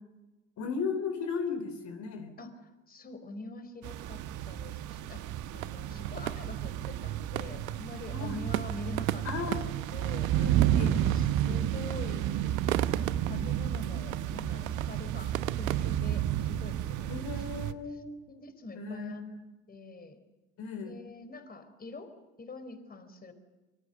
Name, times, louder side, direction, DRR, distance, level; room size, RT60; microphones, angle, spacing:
voice 1, 0.6-2.3 8.1-8.4 9.2-9.6 10.3-11.1 11.4-11.6 13.3-13.6 17.1-18.1 18.7-19.5 20.6-21.0, left 5 dB, 45° left, 7 dB, 3.5 m, -36 dB
voice 2, 2.9-4.2 4.5-5.3 5.5-9.6 9.9-10.3 11.1-17.8 18.3-19.2 19.7-20.2 20.8-22.1 22.4-23.3, left 3 dB, 20° left, 10 dB, 4.6 m, -45 dB
sound 1, 3.8-17.7, right 11 dB, 45° right, 1.6 m, -31 dB
sound 2, 4.9-16.0, right 13 dB, 75° right, 1.1 m, -39 dB
25.5 x 25.0 x 6.8 m, 1.1 s
hypercardioid pair, 75°, 40 cm